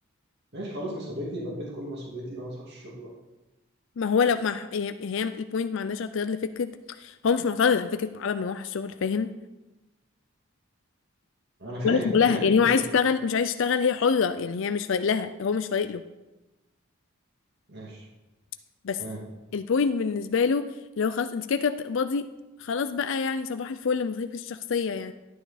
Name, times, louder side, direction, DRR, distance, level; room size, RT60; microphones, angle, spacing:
voice 1, 0.5-3.1 11.6-12.9 17.7-18.1 19.0-19.2, equal, 55° right, -4 dB, 2.4 m, -35 dB
voice 2, 4.0-9.3 11.8-16.0 18.8-19.0 19.5-22.3 22.6-25.1, left 5 dB, 65° left, 10 dB, 0.4 m, -26 dB
12.5 x 9.4 x 4.2 m, 1.0 s
head